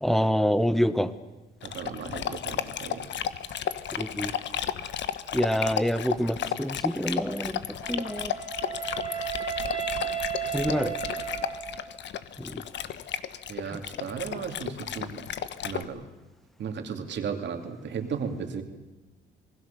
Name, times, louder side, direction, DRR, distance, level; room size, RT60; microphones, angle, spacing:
voice 1, 0.0-1.1 4.0-4.3 5.3-7.5 7.9-8.3 10.5-11.0 12.4-12.6 13.7-13.8, equal, ahead, 13 dB, 1.3 m, -26 dB
Dog, 1.6-15.8, left 9 dB, 65° left, 1.2 m, -34 dB
voice 2, 1.6-3.1 3.5-3.6 13.5-15.3 15.6-16.1 16.6-18.6, right 6 dB, 65° right, 6 dB, 2.9 m, -35 dB
Wind instrument woodwind instrument, 7.8-12.0, right 9 dB, 25° right, 2.9 m, -34 dB
27.5 x 20.0 x 7.0 m, 1.1 s
cardioid pair, 90°, 20 cm